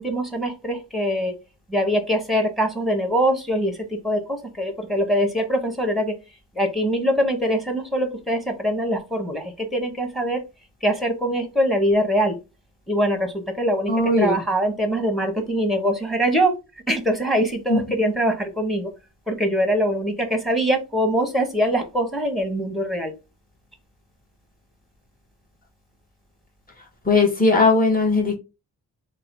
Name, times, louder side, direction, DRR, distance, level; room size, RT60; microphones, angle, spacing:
voice 1, 0.0-1.3 1.7-6.1 6.5-10.4 10.8-12.4 12.9-16.5 16.9-18.9 19.3-23.1, equal, ahead, 1.1 m, -23 dB
voice 2, 13.9-14.4 17.7-17.8 27.0-28.4, left 3 dB, 25° left, 1.4 m, -18 dB
3.0 x 2.3 x 3.9 m
cardioid pair, 60°, 37 cm